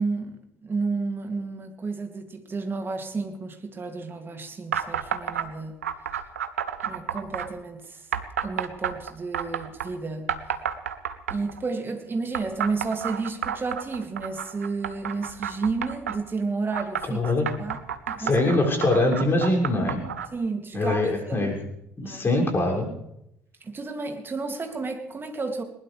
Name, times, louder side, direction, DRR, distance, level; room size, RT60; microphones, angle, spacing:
voice 1, 0.0-5.7 6.8-8.0 8.4-10.3 11.3-17.2 17.6-17.8 18.1-18.6 20.3-21.4 22.0-22.3 23.6-25.6, right 4 dB, 30° right, 4 dB, 2.7 m, -31 dB
sound 1, 4.7-5.5 5.8-7.5 8.1-9.9 10.3-11.6 12.3-16.2 16.7-20.3, right 8 dB, 80° right, 0.8 m, -30 dB
voice 2, 17.1-17.5 18.2-20.0 20.7-21.6 22.0-22.9, left 2 dB, 30° left, -1 dB, 6.6 m, -23 dB
20.5 x 20.0 x 3.5 m, 0.79 s
figure-of-eight pair, 55°, 8 cm